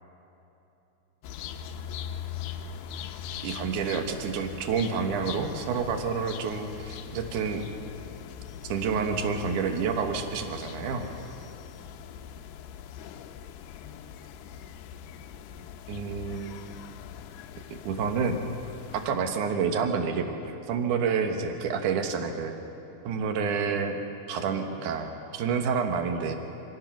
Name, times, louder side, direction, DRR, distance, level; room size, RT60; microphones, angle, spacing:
sound 1, 1.2-19.3, left 8 dB, 80° left, 2.6 m, -41 dB
voice 1, 3.4-7.7 8.6-11.1 15.9-16.7 17.8-18.5 18.9-22.5 23.0-24.0 24.3-26.3, right 5 dB, 65° right, 5 dB, 2.1 m, -29 dB
26.5 x 17.5 x 6.1 m, 2.9 s
omnidirectional pair, 5.2 m